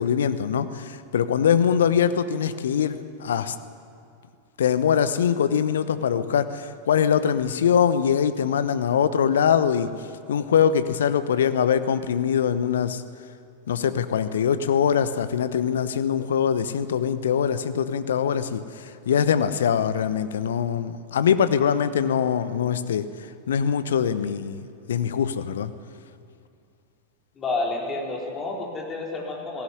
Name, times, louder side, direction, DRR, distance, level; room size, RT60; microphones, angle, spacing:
voice 1, 0.0-3.5 4.6-9.9 10.3-13.0 13.7-18.6 19.1-23.1 23.5-24.6 24.9-25.7, left 8 dB, 65° left, 13 dB, 0.9 m, -23 dB
voice 2, 27.3-29.6, left 2 dB, 25° left, -2 dB, 4.5 m, -29 dB
17.0 x 16.0 x 9.7 m, 2.4 s
figure-of-eight pair, 90°, 0 cm